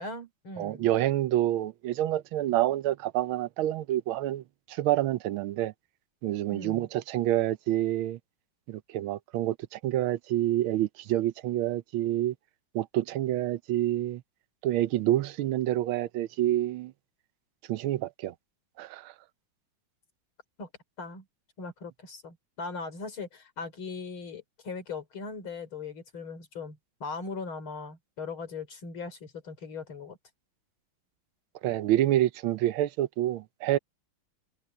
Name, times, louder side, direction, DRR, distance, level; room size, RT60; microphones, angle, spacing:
voice 1, 0.0-0.9 6.5-6.9 20.6-20.7 21.0-21.2 21.6-30.2, left 4 dB, 85° left, 4.6 m, -39 dB
voice 2, 0.6-5.7 6.2-8.2 8.7-12.3 12.7-14.2 14.6-16.9 17.7-18.3 18.8-19.1 31.6-33.8, right 13 dB, 90° right, 1.5 m, -28 dB
omnidirectional pair, 2.2 m